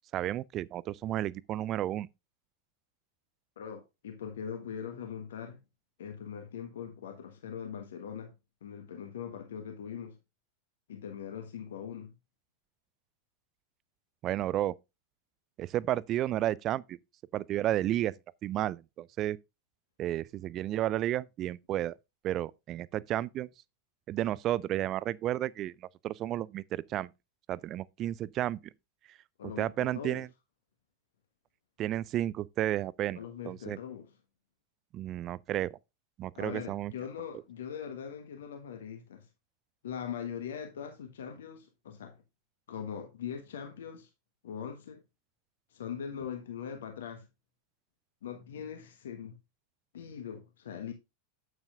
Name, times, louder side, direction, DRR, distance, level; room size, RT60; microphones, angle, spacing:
voice 1, 0.1-2.1 14.2-14.7 15.6-17.0 17.3-18.1 18.4-19.4 20.0-21.9 22.2-23.5 24.1-25.7 26.0-27.1 27.5-28.6 29.6-30.3 31.8-33.2 33.4-33.8 34.9-35.7 36.2-36.9, right 13 dB, 35° right, 0.4 m, -32 dB
voice 2, 3.6-5.6 6.0-8.3 8.6-10.2 10.9-12.1 29.4-30.2 33.1-34.2 36.4-39.3 39.8-42.2 42.7-44.1 44.4-45.0 45.7-47.3 48.2-49.4 49.9-50.9, left 8 dB, 60° left, 1.2 m, -41 dB
9.4 x 8.8 x 2.4 m
figure-of-eight pair, 90°, 0 cm